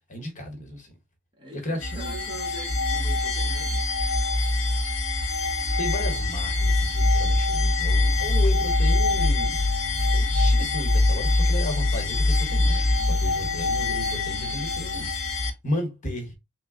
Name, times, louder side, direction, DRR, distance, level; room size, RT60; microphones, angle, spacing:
voice 1, 0.1-0.9 1.5-2.2 5.8-9.6 10.1-16.3, left 1 dB, 40° left, 1.2 m, -34 dB
voice 2, 1.4-3.9 13.4-13.5, right 2 dB, 25° right, 1.1 m, -42 dB
sound 1, 1.8-15.5, left 2 dB, 70° left, 0.7 m, -23 dB
3.2 x 2.3 x 3.6 m
head